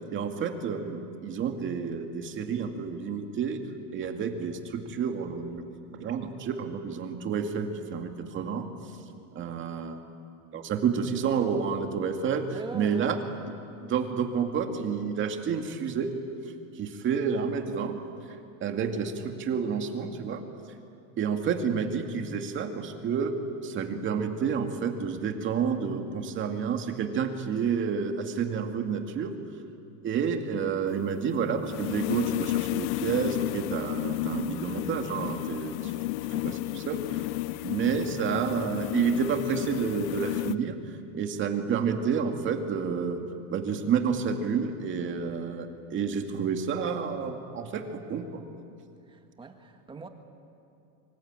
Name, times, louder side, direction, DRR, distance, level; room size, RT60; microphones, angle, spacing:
voice 1, 0.1-3.6 3.9-5.6 5.9-8.7 9.3-10.0 10.5-12.4 12.7-13.5 13.8-16.1 16.8-18.0 18.6-20.4 21.2-23.3 23.6-29.3 30.0-35.9 36.3-37.0 37.6-43.2 43.5-48.4, right 6 dB, 30° right, 5 dB, 2.3 m, -29 dB
voice 2, 12.5-13.1 49.1-50.1, right 4 dB, 10° right, 5 dB, 1.8 m, -42 dB
sound 1, 30.9-40.5, left 18 dB, 90° left, 0.7 m, -32 dB
25.0 x 25.0 x 8.9 m, 2.7 s
supercardioid pair, 160°, 39 cm